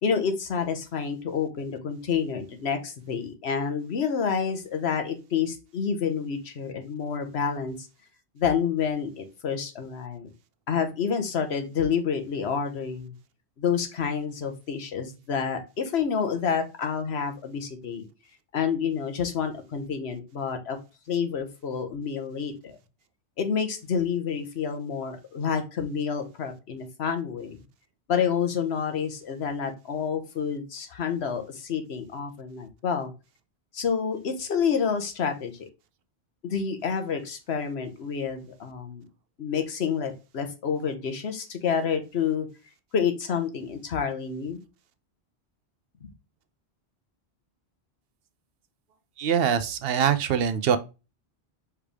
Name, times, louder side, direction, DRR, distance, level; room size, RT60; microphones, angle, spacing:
voice 1, 0.0-7.8 8.4-10.3 10.7-13.1 13.6-18.0 18.5-20.8 21.1-22.8 23.4-27.6 28.1-33.1 33.7-35.7 36.4-39.1 39.4-42.5 42.9-44.6 46.0-46.1, left 6 dB, 75° left, 1.2 m, -28 dB
voice 2, 49.2-50.8, right 8 dB, 65° right, 0.7 m, -23 dB
4.7 x 3.3 x 3.4 m
omnidirectional pair, 1.1 m